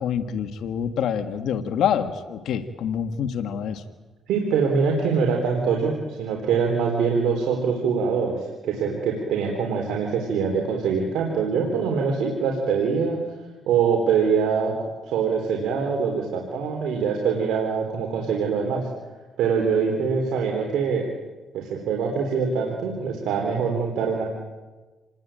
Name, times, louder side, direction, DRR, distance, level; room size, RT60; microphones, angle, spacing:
voice 1, 0.0-3.8, left 8 dB, 75° left, 8 dB, 1.6 m, -26 dB
voice 2, 4.3-13.2 13.7-14.7 15.1-18.9 19.4-21.0 21.5-24.2, right 6 dB, 85° right, 1 dB, 3.9 m, -24 dB
28.5 x 20.5 x 9.0 m, 1.2 s
cardioid pair, 90°, 0 cm